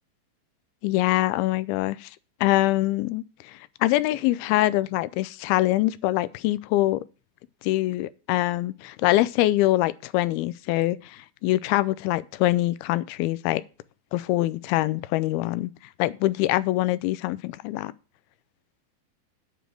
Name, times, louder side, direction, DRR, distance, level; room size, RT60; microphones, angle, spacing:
voice 1, 0.8-2.1 2.4-7.0 7.6-13.6 14.1-15.7 16.0-17.9, left 16 dB, 85° left, 2.5 m, -24 dB
9.0 x 5.1 x 7.6 m
omnidirectional pair, 4.3 m